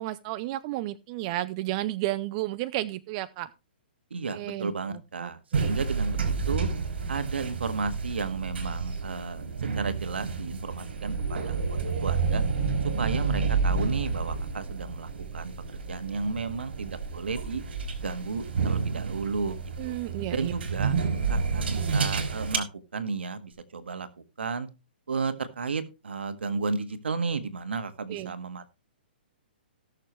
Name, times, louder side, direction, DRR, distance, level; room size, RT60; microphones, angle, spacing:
voice 1, 0.0-3.5 4.3-5.7 19.8-20.5 21.3-21.4 28.1-28.3, right 16 dB, 35° right, 13 dB, 0.5 m, -33 dB
voice 2, 4.1-6.7 7.1-12.4 13.0-17.6 18.0-19.9 20.3-20.9 21.3-22.7 22.9-24.1 24.4-24.7 25.1-28.7, right 4 dB, 85° right, 10 dB, 1.7 m, -33 dB
sound 1, 5.5-22.6, right 5 dB, 70° right, 3.4 m, -30 dB
18.5 x 6.8 x 3.2 m, 0.27 s
hypercardioid pair, 145°, 6 cm